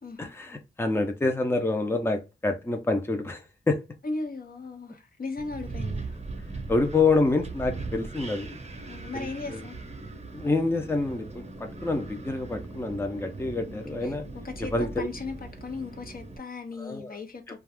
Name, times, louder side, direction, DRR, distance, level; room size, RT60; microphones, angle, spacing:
voice 1, 0.2-3.8 6.7-8.6 9.1-9.6 10.3-14.2 14.7-15.1 16.8-17.2, left 3 dB, 10° left, 0.5 m, -27 dB
voice 2, 4.0-6.2 8.9-9.8 13.7-14.1 14.4-17.6, left 3 dB, 50° left, 0.7 m, -37 dB
Wind, 5.4-16.4, right 3 dB, 35° right, 0.7 m, -39 dB
2.4 x 2.4 x 3.4 m
cardioid pair, 50°, 19 cm